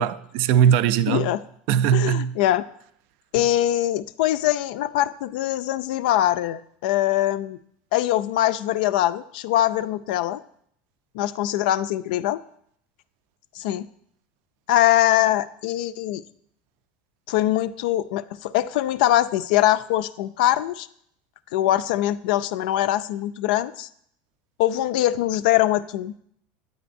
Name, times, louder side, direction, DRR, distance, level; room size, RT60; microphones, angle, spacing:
voice 1, 0.0-1.3 1.7-2.4, right 9 dB, 55° right, 0.4 m, -20 dB
voice 2, 1.1-1.4 1.9-2.6 3.3-7.6 7.9-10.4 11.1-12.4 13.6-13.9 14.7-16.2 17.3-20.9 21.5-23.9 24.6-26.1, left 13 dB, 75° left, 0.4 m, -22 dB
9.1 x 9.0 x 2.6 m
supercardioid pair, 160°, 5 cm